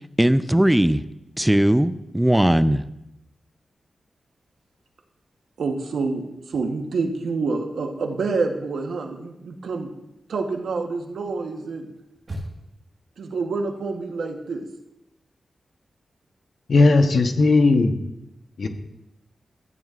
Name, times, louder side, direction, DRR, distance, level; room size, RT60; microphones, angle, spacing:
voice 1, 0.2-1.0 1.4-2.8, right 1 dB, 10° right, 13 dB, 0.4 m, -18 dB
voice 2, 5.6-9.9 10.3-11.9 13.2-14.7, right 4 dB, 85° right, 4 dB, 1.0 m, -27 dB
sound 1, 6.5-7.5 7.8-12.9, equal, 45° right, 1.6 m, -42 dB
voice 3, 16.7-17.9 18.6-18.7, left 3 dB, 65° left, 7 dB, 0.9 m, -17 dB
13.5 x 9.0 x 2.4 m, 0.89 s
cardioid pair, 70°, 0 cm